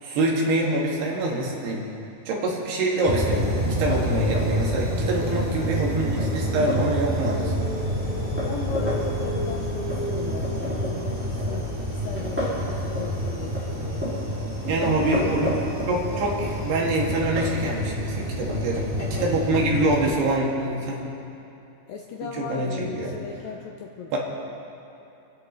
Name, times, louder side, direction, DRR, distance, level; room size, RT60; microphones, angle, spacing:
voice 1, 0.0-1.8 2.3-7.6 14.6-15.6 15.9-21.1 22.2-23.1 24.1-24.2, right 2 dB, 75° right, -3 dB, 4.1 m, -25 dB
sound 1, 3.0-20.1, equal, 5° right, 3.9 m, -27 dB
voice 2, 5.1-5.8 8.4-11.6 11.9-14.1 14.8-15.6 18.8-19.3 21.9-24.2, left 6 dB, 80° left, 1 dB, 2.1 m, -37 dB
28.0 x 10.5 x 4.0 m, 2.8 s
omnidirectional pair, 4.9 m